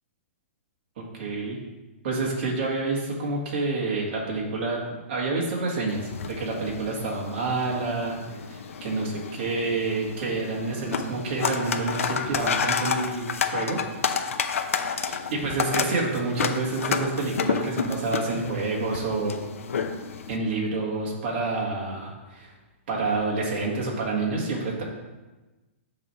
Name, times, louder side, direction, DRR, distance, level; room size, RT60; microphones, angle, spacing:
voice 1, 1.0-1.6 2.0-13.8 15.1-19.4 20.3-22.5 22.9-24.8, right 3 dB, 45° right, -2 dB, 1.8 m, -28 dB
sound 1, 5.9-20.4, left 6 dB, 90° left, 0.6 m, -30 dB
7.4 x 3.3 x 5.8 m, 1.1 s
hypercardioid pair, 160°, 7 cm